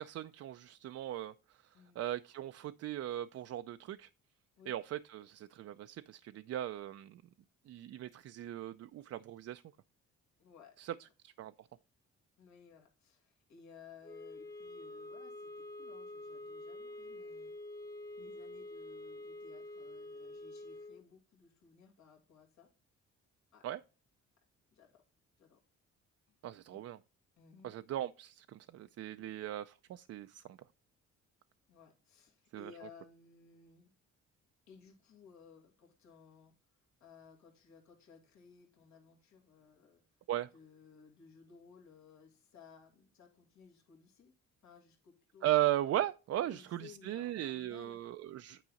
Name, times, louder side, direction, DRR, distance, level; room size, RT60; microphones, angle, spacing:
voice 1, 0.0-1.3 2.0-4.1 4.7-7.2 7.7-9.6 10.8-10.9 11.2-11.7 23.6-23.8 26.4-27.0 27.6-30.6 32.5-32.7 40.3-40.5 45.4-48.6, right 13 dB, 55° right, 0.4 m, -37 dB
voice 2, 10.4-11.1 12.4-17.5 18.2-22.7 23.5-23.7 24.7-25.0 25.4-25.6 26.3-26.4 26.7-26.8 27.4-27.7 29.1-29.3 31.7-33.9 34.7-36.5 37.0-40.0 40.5-44.3 44.6-45.7 46.4-48.0, left 6 dB, 65° left, 2.1 m, -59 dB
sound 1, 14.0-21.0, left 2 dB, 10° left, 0.8 m, -47 dB
9.1 x 4.7 x 4.0 m
cardioid pair, 90°, 30 cm